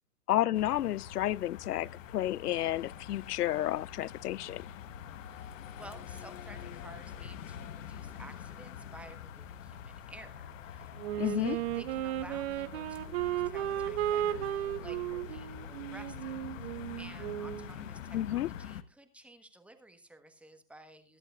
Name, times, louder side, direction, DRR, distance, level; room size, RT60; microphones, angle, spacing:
voice 1, 0.3-4.6 11.2-11.6 18.1-18.5, left 13 dB, 85° left, 0.5 m, -31 dB
sound 1, 0.5-18.8, left 8 dB, 55° left, 1.2 m, -45 dB
voice 2, 5.3-21.2, right 1 dB, 5° right, 1.3 m, -53 dB
Wind instrument woodwind instrument, 11.0-17.7, right 13 dB, 45° right, 1.1 m, -34 dB
22.0 x 11.0 x 2.4 m
hypercardioid pair, 135°, 45 cm